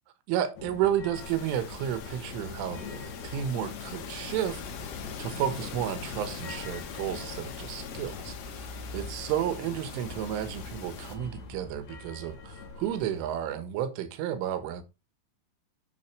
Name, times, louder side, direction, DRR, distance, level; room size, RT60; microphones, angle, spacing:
voice 1, 0.3-14.8, right 10 dB, 80° right, 3.8 m, -32 dB
sound 1, 0.6-13.2, left 4 dB, 60° left, 4.7 m, -43 dB
sound 2, 1.2-11.2, left 7 dB, 90° left, 4.8 m, -43 dB
11.0 x 7.1 x 4.4 m
omnidirectional pair, 5.8 m